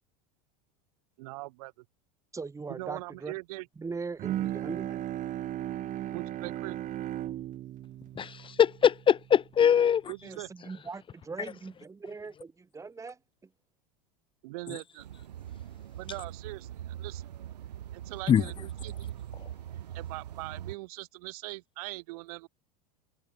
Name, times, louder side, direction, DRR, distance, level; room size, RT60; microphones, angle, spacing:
voice 1, 1.2-1.8 2.7-3.7 6.1-6.8 10.1-10.5 14.4-15.1 16.0-17.2 17.9-19.1 19.9-22.5, right 23 dB, 65° right, 7.3 m, -41 dB
voice 2, 2.3-3.3 3.8-5.0 10.2-13.2, right 4 dB, 15° right, 2.7 m, -40 dB
Bowed string instrument, 4.2-9.6, right 13 dB, 40° right, 2.0 m, -36 dB
voice 3, 8.2-10.0 18.3-18.4, left 8 dB, 25° left, 0.8 m, -22 dB
sound 1, 15.0-20.8, right 11 dB, 85° right, 1.3 m, -41 dB
hypercardioid pair, 100°, 20 cm